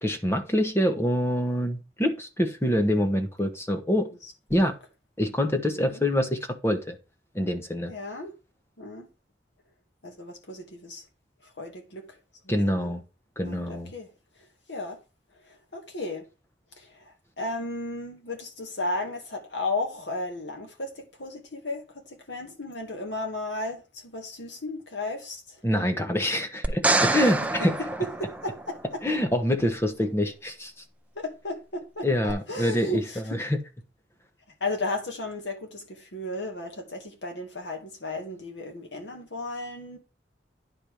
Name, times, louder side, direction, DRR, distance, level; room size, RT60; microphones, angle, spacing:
voice 1, 0.0-4.1 4.5-4.7 5.2-7.0 7.3-7.9 12.5-13.0 13.4-13.9 25.6-27.7 29.0-30.7 32.0-33.0 33.4-33.6, equal, 15° left, 1.2 m, -25 dB
voice 2, 7.9-8.3 8.8-9.1 10.0-11.0 11.4-12.2 12.4-12.9 13.4-14.1 14.7-15.0 15.3-16.3 16.8-25.6 28.0-29.0 31.1-33.4 34.6-40.0, left 2 dB, 85° left, 2.4 m, -34 dB
sound 1, 26.6-28.9 32.3-32.4, right 2 dB, 10° right, 0.6 m, -26 dB
9.9 x 4.5 x 5.1 m
head